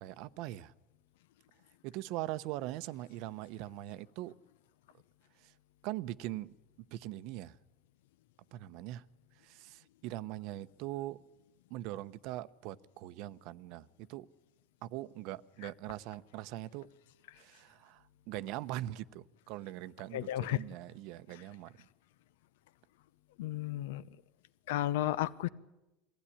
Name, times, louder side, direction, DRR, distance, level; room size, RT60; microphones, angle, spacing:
voice 1, 0.0-0.7 1.8-4.3 5.4-5.5 5.8-6.5 6.9-7.5 8.5-9.0 9.4-11.2 11.7-14.3 14.8-16.9 17.4-21.7, right 15 dB, 60° right, 0.7 m, -41 dB
voice 2, 20.1-20.6 23.4-24.0 24.7-25.5, left 14 dB, 85° left, 0.7 m, -33 dB
22.5 x 15.5 x 10.0 m
supercardioid pair, 140°, 0 cm